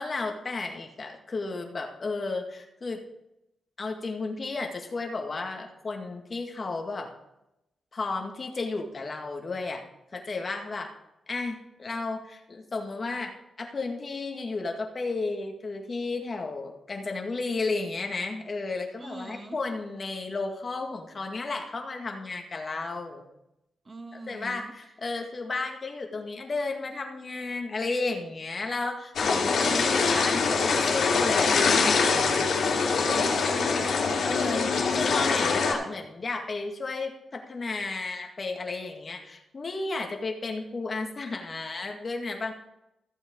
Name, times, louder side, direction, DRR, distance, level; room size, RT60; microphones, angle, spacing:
voice 1, 0.0-3.0 3.8-7.1 7.9-9.8 10.1-10.9 11.3-13.3 13.6-23.2 24.3-32.5 34.2-42.5, left 3 dB, 40° left, 3 dB, 1.8 m, -33 dB
voice 2, 19.0-19.6 23.9-24.5 29.2-30.0 33.1-34.3, right 1 dB, 35° right, 7 dB, 1.4 m, -41 dB
sound 1, 29.2-35.7, left 4 dB, 70° left, 2.5 m, -24 dB
14.5 x 7.8 x 3.8 m, 0.88 s
cardioid pair, 80°, 0 cm